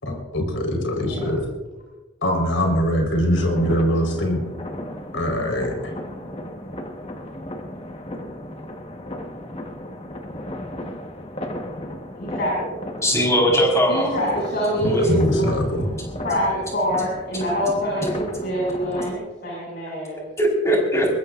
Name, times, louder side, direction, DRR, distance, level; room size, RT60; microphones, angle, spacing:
voice 1, 0.0-1.5 2.2-4.4 5.1-5.9 15.0-15.9, equal, 85° left, 2 dB, 4.6 m, -22 dB
sound 1, 3.4-19.1, left 1 dB, 30° left, 1.5 m, -34 dB
voice 2, 12.1-12.7 13.9-15.8 16.2-20.2, equal, 55° left, -5 dB, 6.7 m, -25 dB
voice 3, 13.0-14.1 14.8-15.0 20.4-21.1, equal, 15° left, -1 dB, 4.8 m, -19 dB
22.0 x 22.0 x 2.6 m, 1.2 s
head